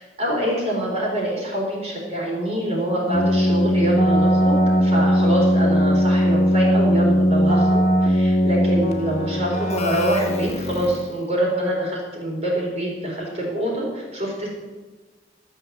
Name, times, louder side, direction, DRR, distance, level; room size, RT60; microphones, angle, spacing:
voice 1, 0.2-7.8 8.2-14.5, right 1 dB, 40° right, -2 dB, 3.8 m, -25 dB
Keyboard (musical), 3.1-11.2, equal, 40° left, 1.5 m, -19 dB
13.5 x 6.8 x 7.6 m, 1.3 s
head